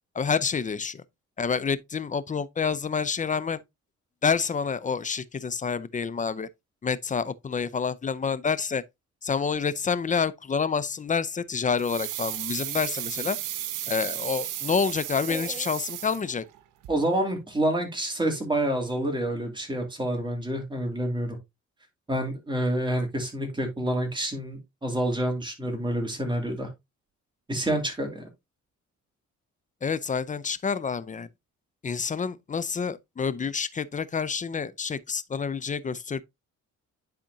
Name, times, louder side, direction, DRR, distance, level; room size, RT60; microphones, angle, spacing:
voice 1, 0.1-1.0 1.4-3.6 4.2-6.5 6.8-8.8 9.2-13.4 13.9-16.4 29.8-31.3 31.8-36.2, left 5 dB, 25° left, 0.6 m, -28 dB
sound 1, 11.8-16.6 16.8-16.9, right 13 dB, 85° right, 0.9 m, -34 dB
voice 2, 15.3-15.6 16.9-21.4 22.1-26.7 27.5-28.3, right 1 dB, 15° right, 2.6 m, -28 dB
10.0 x 4.3 x 2.7 m
cardioid pair, 90°, 30 cm